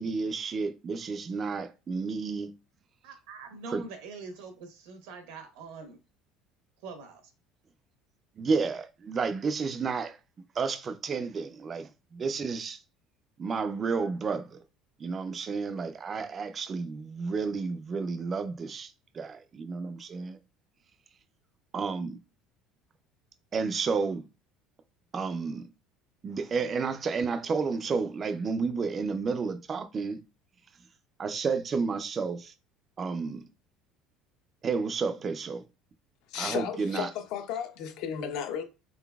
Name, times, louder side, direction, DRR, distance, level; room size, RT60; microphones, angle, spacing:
voice 1, 0.0-2.5 3.7-3.8 8.4-10.2 10.6-12.8 13.4-14.6 15.0-20.4 21.7-22.2 23.5-24.2 25.1-25.7 26.2-30.2 31.2-32.5 33.0-33.4 34.6-35.6 36.3-37.1, right 4 dB, 25° right, 0.3 m, -31 dB
voice 2, 3.0-6.0 6.8-7.2, right 4 dB, 85° right, 1.1 m, -43 dB
voice 3, 36.3-38.6, left 8 dB, 60° left, 0.6 m, -34 dB
4.0 x 3.8 x 2.3 m
cardioid pair, 165°, 0 cm